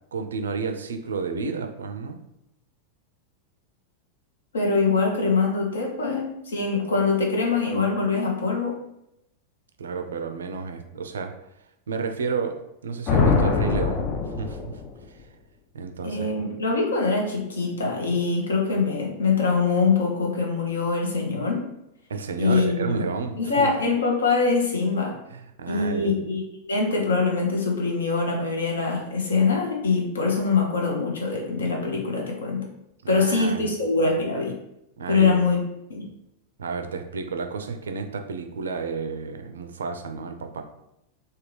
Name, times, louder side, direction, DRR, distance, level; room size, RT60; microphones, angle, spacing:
voice 1, 0.1-2.2 9.8-11.3 11.9-14.8 15.1-15.2 15.7-16.3 22.1-23.7 25.3-26.1 33.0-33.7 35.0-35.4 36.6-40.6, right 5 dB, 65° right, 6 dB, 0.4 m, -31 dB
voice 2, 4.5-8.8 16.0-21.7 22.4-23.0 23.4-25.2 25.7-32.6 33.1-34.6 35.1-35.6 35.9-36.1, left 4 dB, 70° left, 0 dB, 0.8 m, -23 dB
sound 1, 13.1-15.0, left 5 dB, 35° left, 0.4 m, -23 dB
3.4 x 2.2 x 3.1 m, 0.83 s
figure-of-eight pair, 90°, 0 cm